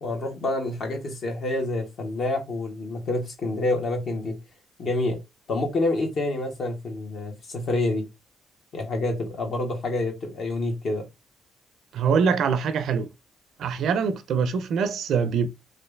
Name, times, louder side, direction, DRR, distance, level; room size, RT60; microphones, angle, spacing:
voice 1, 0.0-4.3 4.8-5.2 5.5-8.0 8.7-11.0, left 2 dB, 60° left, 1.5 m, -27 dB
voice 2, 11.9-13.1 13.6-15.5, right 6 dB, 70° right, 0.5 m, -23 dB
3.2 x 2.6 x 3.3 m
cardioid pair, 90°, 0 cm